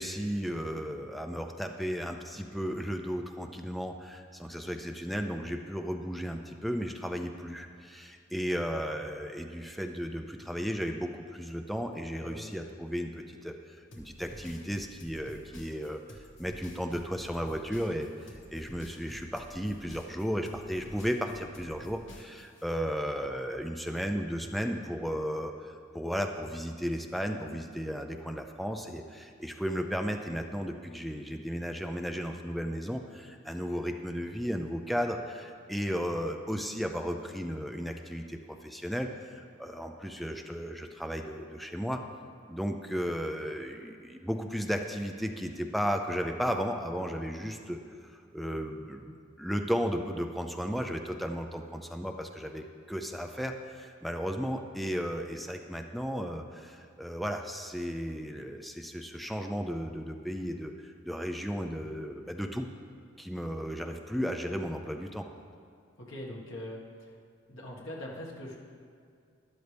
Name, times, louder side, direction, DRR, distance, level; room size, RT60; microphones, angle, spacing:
voice 1, 0.0-16.0 16.4-42.0 42.5-62.7 63.2-65.3, equal, ahead, 4 dB, 0.4 m, -34 dB
voice 2, 12.2-12.5 66.0-67.1 67.5-68.6, left 1 dB, 90° left, -3 dB, 1.8 m, -42 dB
sound 1, 13.9-22.6, left 1 dB, 70° left, 1.3 m, -50 dB
12.5 x 11.0 x 3.4 m, 2.3 s
head